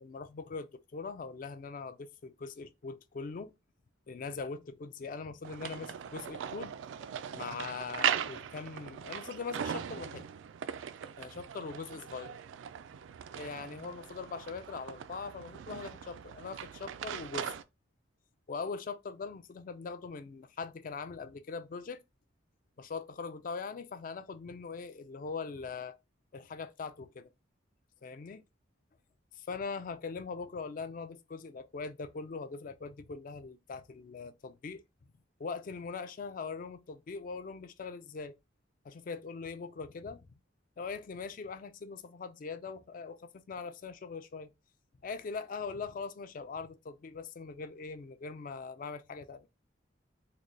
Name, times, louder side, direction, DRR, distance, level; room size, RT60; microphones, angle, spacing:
voice 1, 0.0-3.5 4.1-6.8 7.4-10.3 11.2-12.4 13.4-17.5 18.5-22.0 22.8-26.0 26.3-27.3 28.0-28.4 29.3-34.8 35.4-38.3 38.8-40.3 40.8-44.5 45.0-49.5, left 4 dB, 45° left, 0.3 m, -41 dB
sound 1, 5.4-17.6, right 9 dB, 75° right, 0.3 m, -39 dB
3.8 x 2.2 x 3.0 m
head